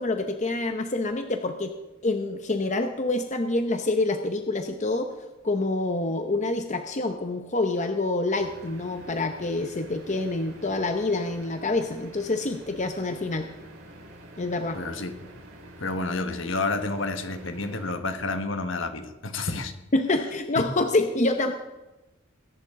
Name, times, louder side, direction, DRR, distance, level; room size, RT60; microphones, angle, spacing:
voice 1, 0.0-1.7 2.0-5.1 5.4-13.5 14.4-14.8 19.9-21.5, left 2 dB, 35° left, 6 dB, 0.8 m, -27 dB
sound 1, 8.4-18.0, right 1 dB, 80° right, 4.0 m, -47 dB
voice 2, 14.7-15.3 15.8-19.7, left 3 dB, 65° left, 7 dB, 1.3 m, -30 dB
22.0 x 10.5 x 3.7 m, 1.0 s
head